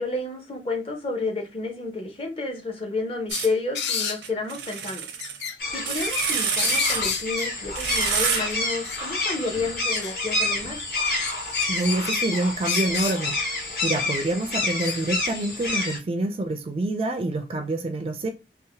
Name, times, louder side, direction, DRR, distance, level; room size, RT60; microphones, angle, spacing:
voice 1, 0.0-5.1 5.7-10.8, left 3 dB, 30° left, 0.6 m, -30 dB
sound 1, 3.3-4.2 5.2-6.1 6.4-7.6 8.1-9.1 9.4-10.5 11.2-12.2 12.6-13.5 14.8-15.0, left 7 dB, 75° left, 0.4 m, -31 dB
sound 2, 3.3-3.5 4.2-5.5 5.9-7.0 7.7-8.4, right 8 dB, 85° right, 0.6 m, -28 dB
sound 3, 5.6-16.0, left 2 dB, 55° left, 1.2 m, -28 dB
voice 2, 11.7-13.4 13.8-18.3, right 2 dB, 35° right, 0.3 m, -26 dB
2.7 x 2.0 x 2.7 m
head